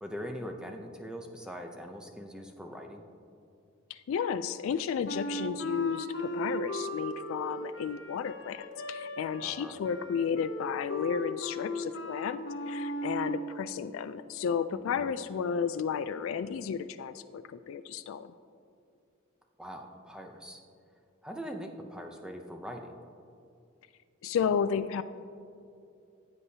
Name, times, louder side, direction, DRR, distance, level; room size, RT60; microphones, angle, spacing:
voice 1, 0.0-3.0 9.4-9.8 14.7-15.1 19.6-20.6 21.2-23.0, equal, 5° right, 3 dB, 0.6 m, -42 dB
voice 2, 3.9-12.4 12.7-18.3 24.2-25.0, left 7 dB, 80° left, 11 dB, 0.3 m, -32 dB
Wind instrument woodwind instrument, 5.0-13.5, equal, 65° left, 0.9 m, -37 dB
15.5 x 8.1 x 2.8 m, 2.6 s
head